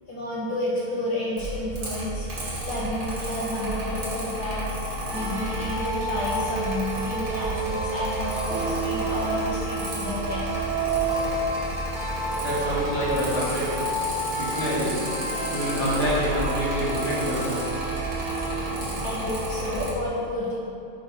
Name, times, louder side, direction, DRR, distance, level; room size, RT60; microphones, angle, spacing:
voice 1, 0.1-10.5 18.6-20.6, left 1 dB, 60° left, -5 dB, 1.3 m, -31 dB
Mechanical fan, 1.4-19.9, right 1 dB, 50° right, 1.9 m, -32 dB
sound 1, 5.1-18.8, right 2 dB, 85° right, 2.1 m, -31 dB
voice 2, 12.4-13.7 14.4-15.0 15.5-17.6, equal, 20° right, -10 dB, 0.9 m, -27 dB
5.3 x 5.2 x 4.0 m, 2.6 s
omnidirectional pair, 2.2 m